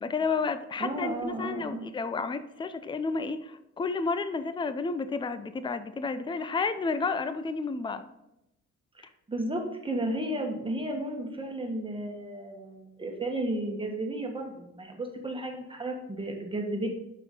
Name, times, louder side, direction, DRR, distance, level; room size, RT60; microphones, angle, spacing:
voice 1, 0.0-8.0, left 4 dB, 15° left, 11 dB, 0.5 m, -31 dB
voice 2, 0.8-1.9 8.9-16.9, right 1 dB, 15° right, 2 dB, 1.4 m, -33 dB
6.9 x 5.7 x 3.7 m, 0.87 s
cardioid pair, 90°, 30 cm